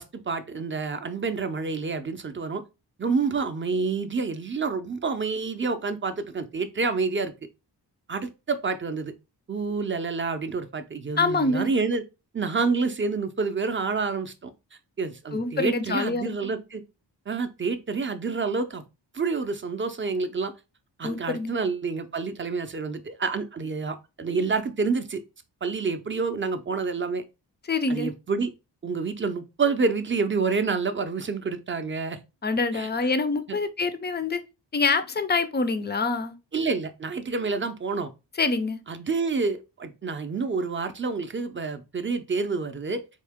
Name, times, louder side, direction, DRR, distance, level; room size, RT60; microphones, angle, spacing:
voice 1, 0.0-2.6 3.0-7.3 8.1-9.1 9.5-12.0 12.3-14.5 15.0-16.8 17.3-18.8 19.1-20.5 21.0-25.2 25.6-27.2 27.9-28.5 28.8-32.2 32.7-32.9 33.5-33.6 36.5-38.1 38.9-43.0, right 4 dB, 30° right, 0.5 m, -28 dB
voice 2, 11.2-11.7 15.3-16.5 21.0-21.5 27.7-28.1 32.4-34.4 34.7-36.4 38.4-38.8, left 3 dB, 25° left, 0.4 m, -26 dB
4.4 x 2.8 x 3.5 m
wide cardioid pair, 155°, 43 cm